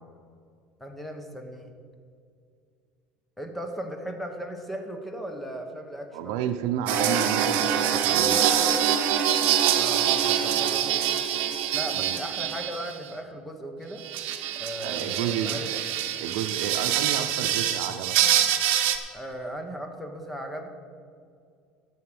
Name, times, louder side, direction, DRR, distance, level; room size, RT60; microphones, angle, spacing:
voice 1, 0.8-1.7 3.4-6.4 9.7-11.0 11.7-14.0 14.6-15.7 19.1-20.7, right 1 dB, 5° left, 4 dB, 1.1 m, -37 dB
voice 2, 6.1-8.4 11.9-12.2 14.8-15.8 16.2-18.2, right 9 dB, 80° right, 6 dB, 0.6 m, -31 dB
sound 1, 6.9-12.9 14.0-19.0, right 10 dB, 65° right, 1.0 m, -25 dB
11.0 x 7.7 x 6.1 m, 2.3 s
cardioid pair, 155°, 3 cm